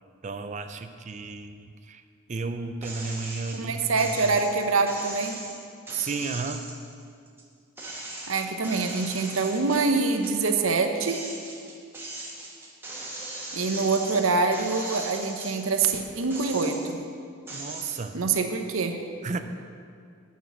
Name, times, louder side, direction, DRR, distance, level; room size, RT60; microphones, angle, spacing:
voice 1, 0.2-2.0 2.3-4.4 5.9-6.7 17.5-18.2 19.2-19.4, right 4 dB, 35° right, 8 dB, 0.5 m, -33 dB
sound 1, 2.8-3.6 4.0-7.4 7.8-10.4 10.8-15.8 16.2-17.0 17.5-18.0, right 2 dB, 10° right, 1.3 m, -39 dB
voice 2, 3.5-5.4 8.3-11.2 13.5-17.0 18.1-19.0, right 4 dB, 65° right, 6 dB, 0.8 m, -25 dB
9.4 x 6.1 x 7.3 m, 2.3 s
head